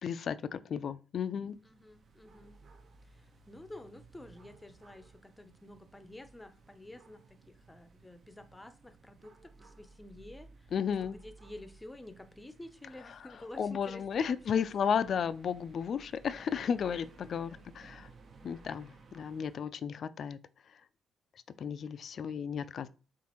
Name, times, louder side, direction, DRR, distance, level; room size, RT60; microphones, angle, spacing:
voice 1, 0.0-1.6 10.7-11.2 13.6-18.1 18.4-20.4 21.6-22.9, left 7 dB, 55° left, 0.3 m, -33 dB
sound 1, 1.5-19.6, right 4 dB, 50° right, 0.7 m, -58 dB
voice 2, 1.6-2.6 3.0-10.7 11.0-14.9, left 1 dB, 15° left, 0.6 m, -50 dB
7.1 x 2.5 x 2.9 m
cardioid pair, 90°, 0 cm